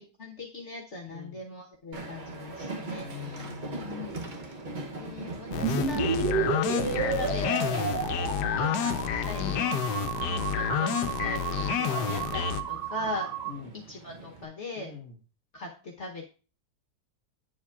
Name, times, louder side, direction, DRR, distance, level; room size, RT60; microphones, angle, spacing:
voice 1, 0.0-3.5 3.8-4.6 5.0-9.7 10.2-13.3 13.9-14.9 15.5-16.3, left 2 dB, 50° left, 0 dB, 1.1 m, -40 dB
voice 2, 1.1-1.4 3.0-3.9 9.4-10.5 11.9-12.1 13.5-13.8 14.8-15.1, left 6 dB, 10° left, -1 dB, 1.1 m, -42 dB
Train, 1.9-14.5, right 2 dB, 45° right, 0.7 m, -41 dB
sound 1, 5.5-12.6, left 9 dB, 80° left, 1.2 m, -29 dB
sound 2, 5.6-13.5, right 6 dB, 70° right, 1.3 m, -32 dB
9.7 x 7.2 x 2.4 m, 0.36 s
omnidirectional pair, 1.8 m